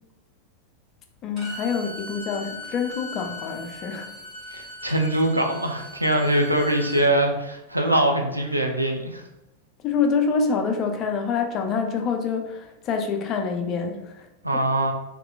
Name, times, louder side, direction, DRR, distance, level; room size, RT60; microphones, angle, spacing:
voice 1, 1.2-4.1 9.8-14.3 14.5-14.6, left 5 dB, 30° left, 4 dB, 0.4 m, -26 dB
Bowed string instrument, 1.4-7.1, left 2 dB, 5° left, 1.5 m, -39 dB
voice 2, 4.5-9.2 14.4-14.9, right 1 dB, 85° right, 3 dB, 0.3 m, -23 dB
2.8 x 2.3 x 2.2 m, 0.93 s
figure-of-eight pair, 90°, 0 cm